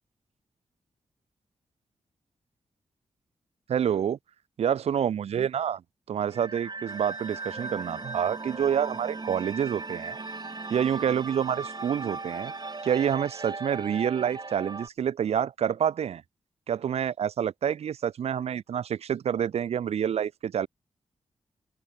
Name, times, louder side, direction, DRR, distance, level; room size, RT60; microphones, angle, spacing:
voice 1, 3.7-4.2 4.6-5.8 6.1-10.2 10.7-12.5 12.8-16.2 16.7-20.7, right 8 dB, 65° right, 0.4 m, -28 dB
sound 1, 6.3-14.9, right 3 dB, 40° right, 2.5 m, -37 dB
sound 2, 6.9-13.1, left 3 dB, 35° left, 7.1 m, -58 dB
supercardioid pair, 40°, 11 cm